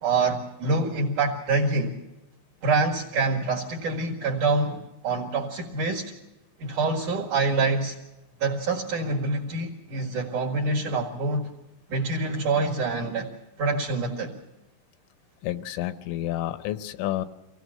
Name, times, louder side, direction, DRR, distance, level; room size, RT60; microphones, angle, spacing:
voice 1, 0.0-1.9 2.6-6.1 6.6-8.0 8.4-11.5 11.9-13.3 13.6-14.3, right 3 dB, 55° right, -2 dB, 2.5 m, -26 dB
voice 2, 15.4-17.3, left 13 dB, 80° left, 12 dB, 3.3 m, -30 dB
25.0 x 18.0 x 6.5 m, 0.98 s
omnidirectional pair, 5.8 m